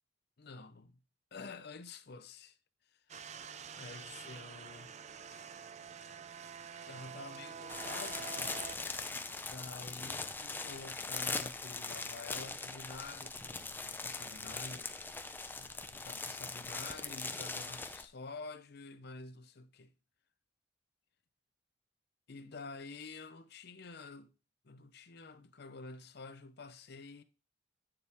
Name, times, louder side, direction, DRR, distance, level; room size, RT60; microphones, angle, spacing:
voice 1, 0.4-1.0 1.3-2.6 2.8-3.2 3.7-5.0 5.3-5.5 6.9-8.6 9.4-14.9 15.5-20.0 22.3-24.3 24.6-27.2, left 3 dB, 55° left, 0.7 m, -49 dB
sound 1, 3.1-8.7, right 7 dB, 35° right, 0.4 m, -47 dB
sound 2, 7.7-18.1, left 3 dB, 10° left, 0.5 m, -41 dB
8.6 x 7.0 x 3.5 m
head